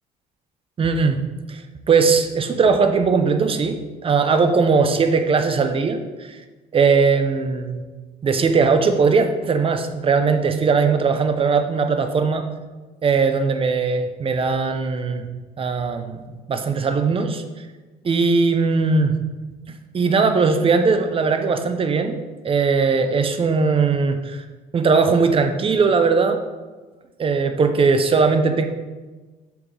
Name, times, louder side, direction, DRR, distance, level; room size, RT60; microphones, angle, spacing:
voice 1, 0.8-1.2 1.5-6.4 6.7-7.8 8.2-12.5 13.0-15.2 15.6-17.4 18.0-19.1 19.9-22.2 22.4-24.4 24.7-26.4 27.2-28.6, right 4 dB, 35° right, 7 dB, 0.7 m, -19 dB
7.5 x 6.1 x 3.4 m, 1.3 s
cardioid pair, 110°, 17 cm